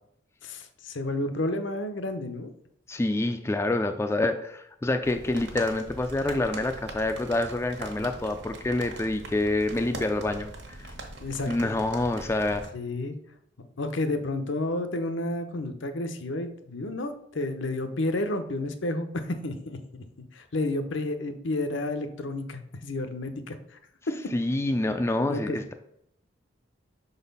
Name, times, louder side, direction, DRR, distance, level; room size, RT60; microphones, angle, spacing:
voice 1, 0.4-2.5 11.2-11.7 12.7-13.2 13.6-20.0 20.3-23.8 24.1-24.2 25.3-25.6, left 2 dB, 65° left, 8 dB, 0.7 m, -31 dB
voice 2, 2.9-10.9 11.5-12.6 24.3-25.7, left 2 dB, 15° left, 7 dB, 0.3 m, -27 dB
sound 1, 5.0-12.7, right 2 dB, 60° right, 1.2 m, -42 dB
5.9 x 4.1 x 5.4 m, 0.74 s
head